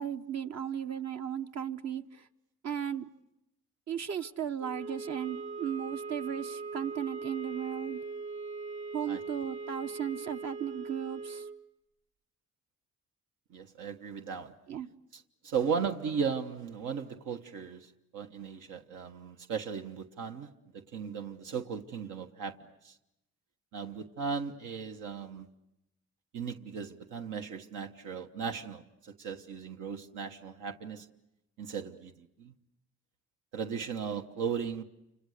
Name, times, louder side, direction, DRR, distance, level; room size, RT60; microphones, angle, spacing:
voice 1, 0.0-2.0 2.6-3.1 3.9-8.0 8.9-11.4 14.7-14.9, right 9 dB, 60° right, 1.1 m, -36 dB
sound 1, 4.6-11.6, right 4 dB, 40° right, 2.4 m, -40 dB
voice 2, 13.5-14.5 15.1-22.6 22.8-23.0 23.7-25.5 26.3-31.1 31.6-32.5 33.5-34.8, right 6 dB, 85° right, 1.3 m, -37 dB
29.5 x 26.5 x 6.6 m
cardioid pair, 90°, 30 cm